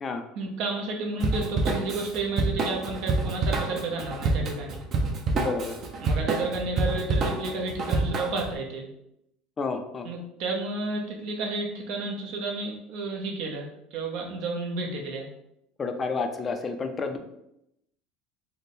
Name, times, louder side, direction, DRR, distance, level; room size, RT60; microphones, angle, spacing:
voice 1, 0.4-4.8 6.0-8.9 10.0-15.3, right 3 dB, 65° right, 1 dB, 0.8 m, -31 dB
Drum kit / Drum, 1.2-8.5, right 3 dB, 40° right, 0.6 m, -27 dB
voice 2, 5.3-5.8 9.6-10.1 15.8-17.2, left 4 dB, 25° left, 6 dB, 0.4 m, -30 dB
3.4 x 2.1 x 4.1 m, 0.82 s
supercardioid pair, 125°, 0 cm